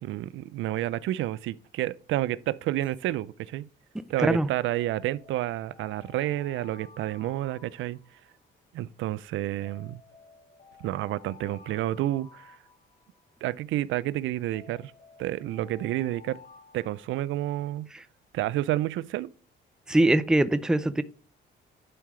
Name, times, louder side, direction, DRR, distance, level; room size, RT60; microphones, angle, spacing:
voice 1, 0.0-3.7 4.1-8.0 8.7-10.0 10.8-12.6 13.4-14.9 15.2-16.4 16.7-17.9 18.3-19.3, right 14 dB, 80° right, 0.4 m, -30 dB
Alarm, 2.7-3.0 4.7-8.5 9.6-13.4 14.5-17.7, left 5 dB, 60° left, 4.1 m, -53 dB
voice 2, 19.9-21.0, right 1 dB, 5° right, 0.5 m, -22 dB
11.0 x 4.7 x 3.1 m
cardioid pair, 90°, 20 cm